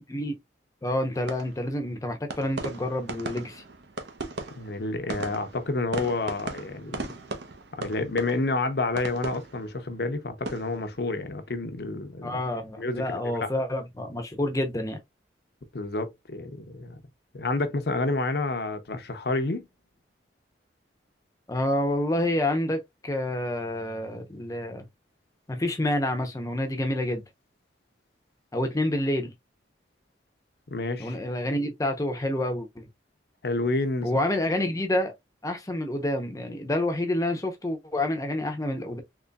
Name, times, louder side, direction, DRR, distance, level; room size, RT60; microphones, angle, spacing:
voice 1, 0.8-3.6 12.2-15.0 21.5-24.8 25.5-27.2 28.5-29.3 31.0-32.9 34.0-35.1 35.4-39.0, left 1 dB, 20° left, 0.6 m, -28 dB
sound 1, 1.1-12.2 12.5-13.0, right 2 dB, 70° right, 0.8 m, -39 dB
voice 2, 4.6-7.1 7.7-12.4 12.8-13.5 15.7-16.9 17.3-19.7 30.7-31.2 33.4-34.1, left 2 dB, 60° left, 0.7 m, -29 dB
4.0 x 3.0 x 2.2 m
head